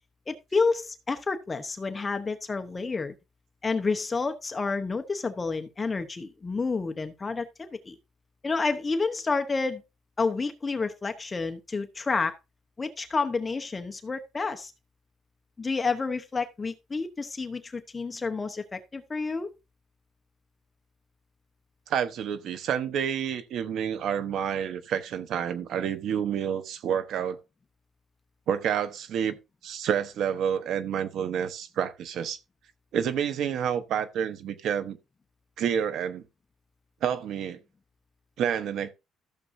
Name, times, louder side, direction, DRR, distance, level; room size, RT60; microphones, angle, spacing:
voice 1, 0.3-3.1 3.6-8.0 8.4-9.8 10.2-12.3 12.8-14.7 15.6-19.5, left 4 dB, 20° left, 0.9 m, -29 dB
voice 2, 21.9-27.4 28.5-29.4 29.6-32.4 32.9-35.0 35.6-36.2 37.0-37.6 38.4-38.9, right 8 dB, 65° right, 1.1 m, -29 dB
14.5 x 6.9 x 2.7 m
cardioid pair, 130°, 0 cm